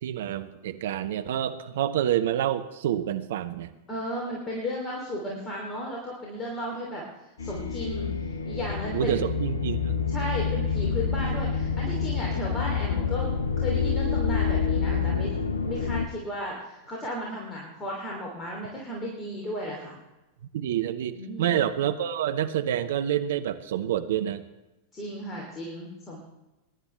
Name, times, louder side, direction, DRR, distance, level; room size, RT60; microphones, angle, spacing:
voice 1, 0.0-3.7 8.9-10.0 20.5-24.4, right 11 dB, 55° right, 10 dB, 0.7 m, -28 dB
voice 2, 3.9-7.0 7.4-9.2 10.1-15.4 15.6-20.0 21.1-21.6 24.9-26.2, equal, 20° left, -2 dB, 3.0 m, -34 dB
sound 1, 7.4-16.1, left 6 dB, 70° left, 0.9 m, -27 dB
22.0 x 11.0 x 3.3 m, 1.0 s
figure-of-eight pair, 90°, 0 cm